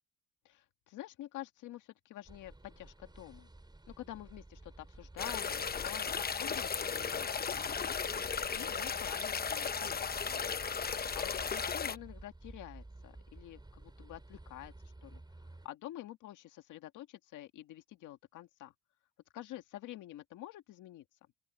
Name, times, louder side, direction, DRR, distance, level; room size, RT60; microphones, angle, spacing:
voice 1, 0.5-3.5 3.9-8.2 8.5-10.0 10.3-10.5 10.8-14.7 15.0-15.2 15.6-18.7 19.3-21.0, left 14 dB, 85° left, 1.9 m, -48 dB
sound 1, 2.2-15.7, right 2 dB, 15° right, 5.5 m, -53 dB
sound 2, 5.2-12.0, left 6 dB, 30° left, 0.9 m, -35 dB
open air
cardioid pair, 90°, 30 cm